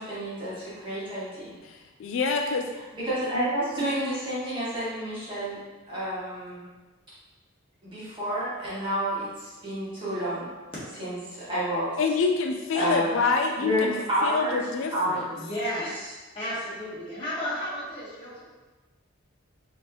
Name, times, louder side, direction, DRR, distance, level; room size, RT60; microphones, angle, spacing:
voice 1, 0.0-1.5 2.9-5.6 5.9-6.7 7.8-10.5 11.0-11.9 12.7-13.2 13.6-14.6 14.9-15.3, equal, 25° right, -10 dB, 1.5 m, -29 dB
voice 2, 1.6-2.6 12.0-13.9 14.2-15.3, left 4 dB, 65° left, 3 dB, 0.3 m, -26 dB
voice 3, 15.3-18.4, equal, 25° left, -9 dB, 1.5 m, -33 dB
4.5 x 2.9 x 3.0 m, 1.2 s
head